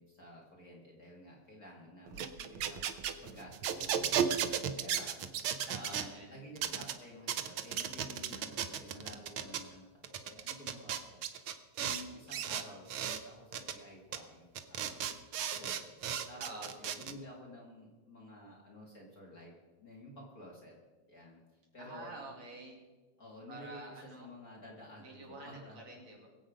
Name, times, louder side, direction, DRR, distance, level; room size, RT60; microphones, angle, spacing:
voice 1, 0.0-2.8 3.2-4.4 4.8-11.2 11.8-15.1 15.4-20.7 21.1-21.4 21.7-22.1 23.2-25.8, left 1 dB, 35° left, -3 dB, 2.3 m, -52 dB
sound 1, 2.1-6.1 6.6-6.9 7.3-9.6 10.0-12.0 12.3-13.2 13.5-13.7 14.1-14.2 14.6-17.1, right 8 dB, 85° right, 1.1 m, -35 dB
voice 2, 5.7-6.3 16.4-16.7 21.8-22.8 23.5-24.3 25.0-26.3, right 2 dB, 65° right, -1 dB, 3.9 m, -48 dB
22.0 x 8.2 x 5.1 m, 1.3 s
omnidirectional pair, 3.4 m